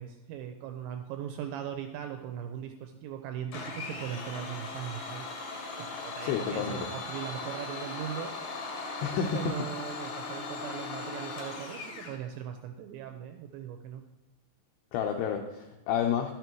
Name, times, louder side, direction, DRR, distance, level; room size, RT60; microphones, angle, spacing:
voice 1, 0.0-5.3 5.8-8.3 9.3-14.1, right 9 dB, 85° right, 6 dB, 2.6 m, -39 dB
Domestic sounds home sounds, 3.5-12.2, left 3 dB, 60° left, 2.2 m, -38 dB
voice 2, 6.2-6.9 9.0-9.4 10.0-10.1 14.9-16.3, left 8 dB, 85° left, 3 dB, 2.4 m, -30 dB
12.0 x 7.0 x 4.5 m, 1.0 s
omnidirectional pair, 5.7 m